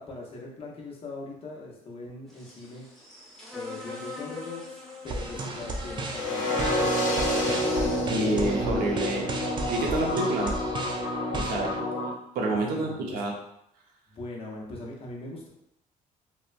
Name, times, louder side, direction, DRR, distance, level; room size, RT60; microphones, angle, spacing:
voice 1, 0.0-2.9 3.5-8.1 12.5-13.2 14.1-15.5, left 2 dB, 40° left, -2 dB, 0.7 m, -41 dB
sound 1, 2.3-8.0, left 4 dB, ahead, 0.8 m, -39 dB
sound 2, 5.1-11.8, right 3 dB, 30° right, 0.3 m, -35 dB
sound 3, 6.1-12.1, left 1 dB, 65° left, 0.9 m, -28 dB
voice 2, 8.1-9.2 9.7-10.5 11.3-11.9 12.3-13.3, right 2 dB, 80° right, 0 dB, 0.6 m, -28 dB
2.8 x 2.1 x 2.4 m, 0.77 s
cardioid pair, 105°, 15 cm